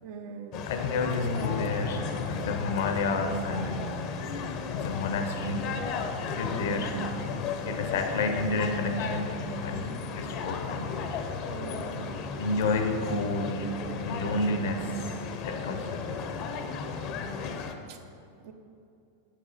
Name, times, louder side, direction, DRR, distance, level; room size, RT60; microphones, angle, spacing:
voice 1, 0.0-0.7 6.4-6.9 11.4-12.3 14.3-14.5 17.9-18.0 18.4-18.5, right 6 dB, 60° right, 5 dB, 0.8 m, -42 dB
sound 1, 0.5-17.7, left 5 dB, 45° left, 0.7 m, -35 dB
voice 2, 0.7-3.9 4.7-5.9 6.3-7.1 7.6-11.2 12.4-15.1 15.4-16.2, left 2 dB, 75° left, 6 dB, 0.9 m, -30 dB
8.2 x 7.0 x 4.2 m, 2.6 s
supercardioid pair, 130°, 0 cm